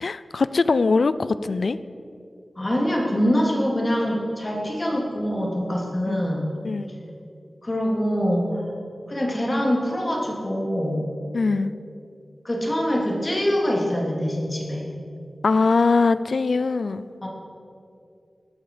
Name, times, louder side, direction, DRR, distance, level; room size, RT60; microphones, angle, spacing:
voice 1, 0.0-1.8 4.7-4.8 6.1-6.2 6.6-6.9 11.3-11.7 15.4-17.1, left 4 dB, 80° left, 15 dB, 0.5 m, -21 dB
voice 2, 2.6-6.5 7.6-8.7 9.1-11.1 12.4-14.8 17.2-17.3, equal, 35° left, -2 dB, 3.5 m, -24 dB
19.5 x 12.5 x 5.1 m, 2.5 s
wide cardioid pair, 65°, 0 cm